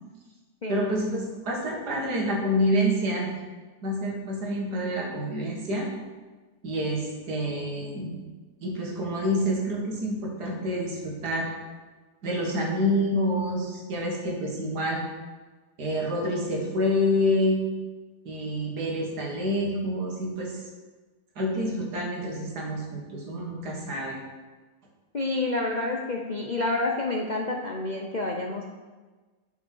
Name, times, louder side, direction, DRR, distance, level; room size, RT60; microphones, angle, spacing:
voice 1, 0.7-3.3 3.8-5.9 6.6-8.1 8.6-11.5 12.2-15.0 15.8-17.6 18.3-20.6 21.4-24.2, equal, 75° right, -1 dB, 2.3 m, -27 dB
voice 2, 25.1-28.6, left 2 dB, 45° left, 0 dB, 0.5 m, -28 dB
10.5 x 6.0 x 4.6 m, 1.3 s
omnidirectional pair, 1.7 m